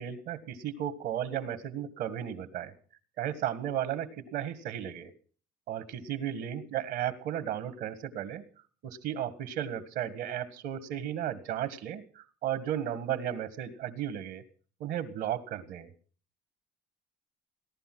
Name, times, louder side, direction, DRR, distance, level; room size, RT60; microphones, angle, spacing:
voice 1, 0.0-2.7 3.2-5.1 5.7-8.4 8.8-14.4 14.8-15.9, right 10 dB, 85° right, 13 dB, 1.7 m, -34 dB
17.0 x 11.5 x 6.1 m, 0.44 s
cardioid pair, 110°, 17 cm